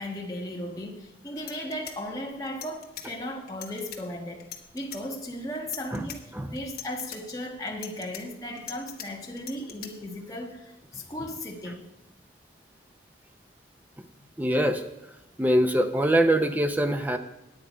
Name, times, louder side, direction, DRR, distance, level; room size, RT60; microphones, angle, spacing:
voice 1, 0.0-4.4 4.7-11.8, left 1 dB, 20° left, -1 dB, 1.3 m, -36 dB
sound 1, 1.0-1.1 1.4-3.1 3.5-4.0 4.4-5.0 5.5-6.2 6.6-7.2 7.7-9.1 9.4-9.9, left 10 dB, 50° left, 1.3 m, -41 dB
voice 2, 14.4-14.8 15.4-17.2, right 1 dB, 10° right, 7 dB, 0.6 m, -23 dB
9.7 x 9.0 x 5.1 m, 0.95 s
head